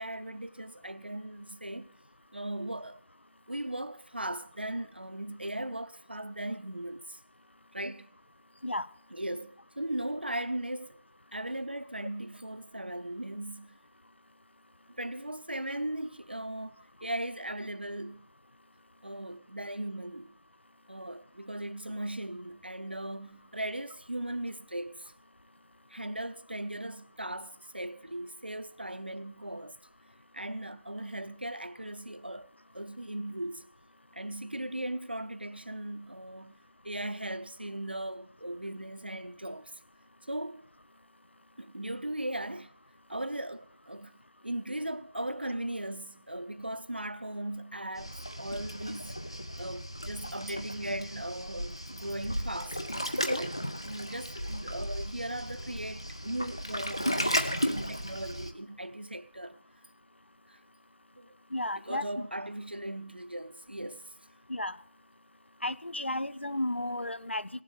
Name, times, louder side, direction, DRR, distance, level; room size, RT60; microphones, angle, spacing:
voice 1, 0.0-1.9 2.3-3.0 3.5-7.2 7.7-8.1 9.1-11.0 11.3-13.8 15.0-18.3 19.0-20.4 20.9-25.1 25.9-29.8 30.3-32.5 32.7-33.7 34.1-39.8 40.2-40.7 41.6-42.7 43.1-44.1 44.4-49.2 49.6-52.8 53.2-59.6 60.5-60.6 61.2-61.4 61.8-64.1, right 1 dB, 55° right, 0.8 m, -38 dB
Waves surf, 48.0-58.5, equal, 25° left, 0.6 m, -35 dB
voice 2, 61.5-62.3 64.5-64.8 65.6-67.5, left 1 dB, 70° left, 0.6 m, -33 dB
17.5 x 7.5 x 8.1 m
figure-of-eight pair, 175°, 7 cm